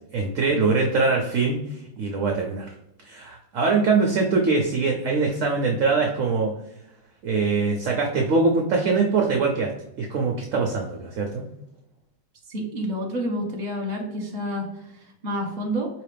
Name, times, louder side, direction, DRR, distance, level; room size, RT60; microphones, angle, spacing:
voice 1, 0.1-2.7 3.0-6.5 7.2-9.7 10.0-11.5, right 4 dB, 65° right, 1 dB, 0.8 m, -23 dB
voice 2, 12.5-15.9, equal, 30° right, 0 dB, 1.0 m, -29 dB
4.8 x 3.1 x 3.3 m, 0.86 s
omnidirectional pair, 1.9 m